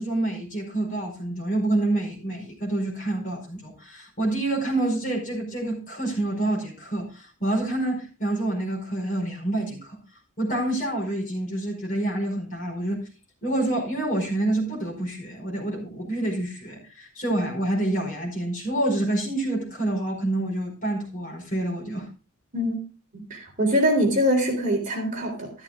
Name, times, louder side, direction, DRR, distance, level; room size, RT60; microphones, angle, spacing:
voice 1, 0.0-10.0 10.4-13.0 13.4-22.1, right 1 dB, 35° left, 4.9 m, -27 dB
voice 2, 23.1-25.5, equal, 35° right, 3.5 m, -23 dB
13.0 x 12.5 x 2.4 m
head